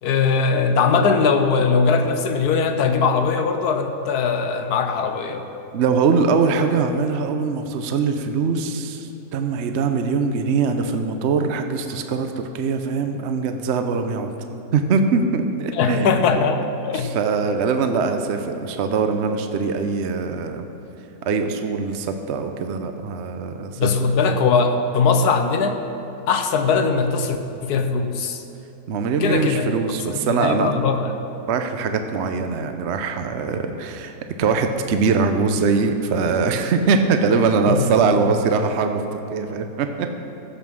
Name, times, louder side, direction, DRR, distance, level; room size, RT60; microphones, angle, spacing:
voice 1, 0.0-5.5 15.7-17.1 23.8-25.8 26.3-28.4 29.2-29.7 30.1-31.1 37.7-37.9, left 5 dB, 75° left, 6 dB, 1.3 m, -20 dB
voice 2, 5.7-14.3 14.7-16.2 16.9-20.6 21.3-23.9 28.9-30.7 31.5-34.1 34.4-40.1, right 5 dB, 55° right, 6 dB, 0.8 m, -22 dB
15.5 x 5.6 x 6.3 m, 3.0 s
omnidirectional pair, 1.7 m